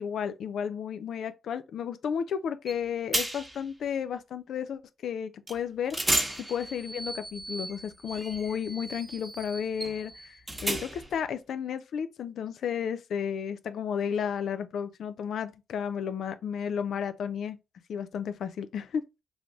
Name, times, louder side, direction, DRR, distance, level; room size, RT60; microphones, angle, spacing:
voice 1, 0.0-17.6 17.9-19.0, left 7 dB, 70° left, 0.3 m, -33 dB
sound 1, 2.7-2.8 3.1-3.6 5.5-5.6 5.9-11.2, right 1 dB, 15° right, 1.0 m, -34 dB
3.2 x 2.5 x 3.5 m
cardioid pair, 75°, 0 cm